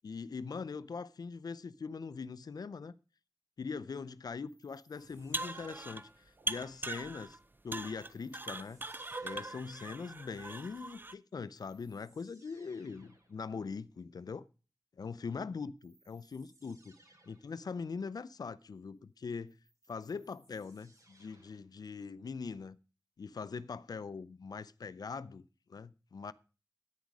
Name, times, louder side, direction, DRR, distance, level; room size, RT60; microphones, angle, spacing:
voice 1, 0.0-2.9 3.6-7.4 7.6-8.8 9.2-14.5 15.0-17.0 17.3-19.6 19.9-22.8 23.2-25.4 25.7-26.3, left 5 dB, 75° left, 0.5 m, -42 dB
sound 1, 4.4-6.5 8.0-9.8 11.1-11.2 11.5-13.4 15.8-17.6 19.3-21.7, right 2 dB, 55° right, 3.9 m, -66 dB
sound 2, 5.1-6.1 6.5-7.4 7.7-11.1, right 2 dB, 30° right, 0.6 m, -41 dB
10.5 x 9.4 x 4.8 m
wide cardioid pair, 65°, 7 cm